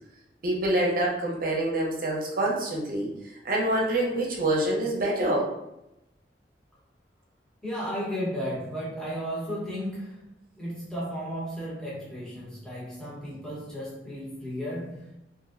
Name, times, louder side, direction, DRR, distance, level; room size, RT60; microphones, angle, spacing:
voice 1, 0.4-3.1 3.4-5.5, right 1 dB, 55° right, -2 dB, 0.7 m, -26 dB
voice 2, 7.6-10.3 10.6-15.1, equal, 5° left, -7 dB, 0.9 m, -34 dB
2.9 x 2.6 x 2.5 m, 0.88 s
head